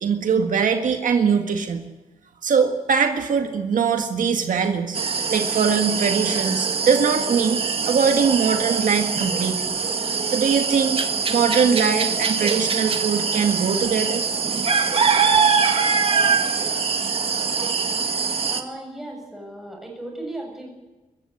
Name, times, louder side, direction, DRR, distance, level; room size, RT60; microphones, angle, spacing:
voice 1, 0.0-1.8 2.4-5.0 5.3-7.6 7.8-9.9 10.3-14.2, right 6 dB, 70° right, 5 dB, 1.7 m, -22 dB
sound 1, 4.9-18.6, right 5 dB, 45° right, 1.7 m, -23 dB
voice 2, 18.5-20.7, right 1 dB, ahead, 0 dB, 7.3 m, -36 dB
23.0 x 14.5 x 9.9 m, 1.1 s
wide cardioid pair, 150°, 14 cm